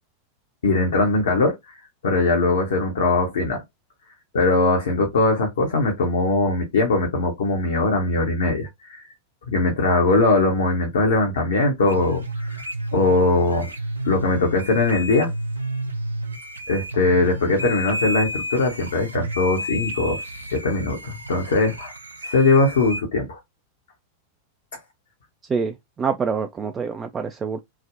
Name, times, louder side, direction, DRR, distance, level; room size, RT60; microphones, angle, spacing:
voice 1, 0.6-1.6 2.0-3.6 4.3-9.1 9.5-13.7 14.0-15.3 16.7-20.2 20.5-21.9 22.2-23.4, left 3 dB, 65° left, 0.8 m, -21 dB
sound 1, 11.9-23.0, equal, 80° right, 0.6 m, -31 dB
voice 2, 25.5-27.6, right 5 dB, 20° right, 0.3 m, -26 dB
3.4 x 2.1 x 2.4 m
figure-of-eight pair, 90°, 0 cm